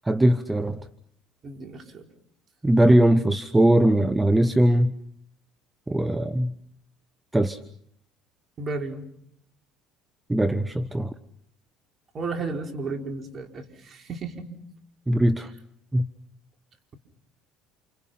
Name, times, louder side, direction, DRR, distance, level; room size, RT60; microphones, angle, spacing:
voice 1, 0.0-0.8 2.6-5.0 5.9-6.5 7.3-7.6 10.3-11.1 15.1-15.5 15.9-16.1, right 1 dB, 10° right, 12 dB, 1.1 m, -20 dB
voice 2, 1.4-2.1 8.6-9.0 12.1-14.5, right 3 dB, 40° right, 4 dB, 4.8 m, -33 dB
29.5 x 29.5 x 6.0 m, 0.69 s
supercardioid pair, 90°, 0 cm